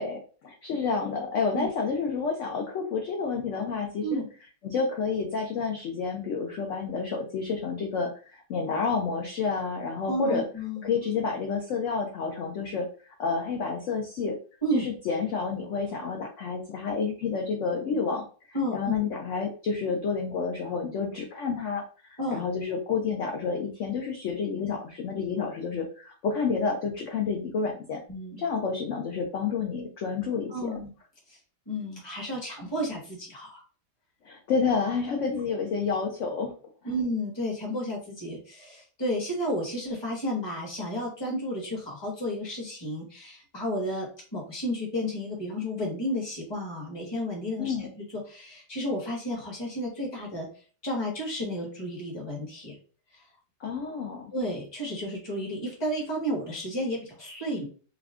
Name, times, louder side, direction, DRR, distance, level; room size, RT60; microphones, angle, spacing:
voice 1, 0.0-4.2 4.6-10.4 10.8-12.9 13.2-14.3 14.7-28.0 28.4-30.7 34.2-36.5 47.6-47.9 53.6-54.3, left 5 dB, 65° left, 1 dB, 0.8 m, -29 dB
voice 2, 10.1-10.9 14.6-14.8 18.5-19.0 22.2-22.4 28.1-28.4 30.5-30.9 31.7-33.6 36.8-50.5 50.8-52.8 54.3-57.6, equal, 20° left, -1 dB, 1.0 m, -32 dB
3.5 x 2.3 x 3.5 m, 0.39 s
omnidirectional pair, 1.8 m